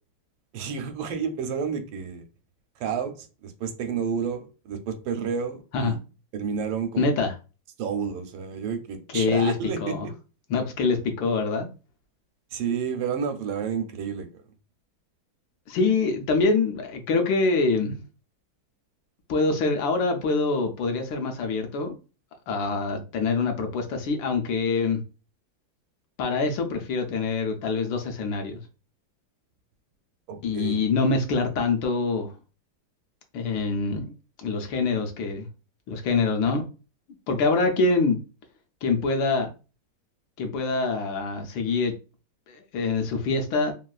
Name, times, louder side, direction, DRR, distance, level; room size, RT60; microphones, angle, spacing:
voice 1, 0.5-2.3 2.8-6.0 6.3-7.1 7.8-9.9 12.5-14.3 30.3-30.8, right 6 dB, 80° right, 1.4 m, -30 dB
voice 2, 7.0-7.3 9.1-9.5 9.8-10.1 10.5-11.7 15.7-18.0 19.3-21.9 22.5-25.0 26.2-28.6 30.4-32.3 33.3-34.1 34.4-35.5 35.9-36.6 37.3-38.2 38.8-39.5 40.4-41.9 42.5-43.7, left 4 dB, 75° left, 1.3 m, -25 dB
3.5 x 2.3 x 2.3 m
omnidirectional pair, 2.2 m